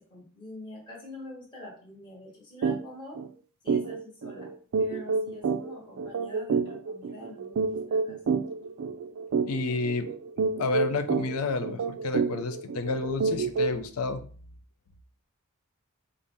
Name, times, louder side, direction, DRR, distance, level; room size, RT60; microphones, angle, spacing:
voice 1, 0.1-3.2 3.6-4.5 4.8-8.3, left 1 dB, 20° left, -5 dB, 1.1 m, -45 dB
sound 1, 2.6-2.8 3.1-3.3 3.7-13.9, right 4 dB, 75° right, 0.4 m, -29 dB
voice 2, 9.5-10.1 10.6-14.2, left 3 dB, 80° left, 10 dB, 0.4 m, -30 dB
4.0 x 2.0 x 3.4 m, 0.42 s
head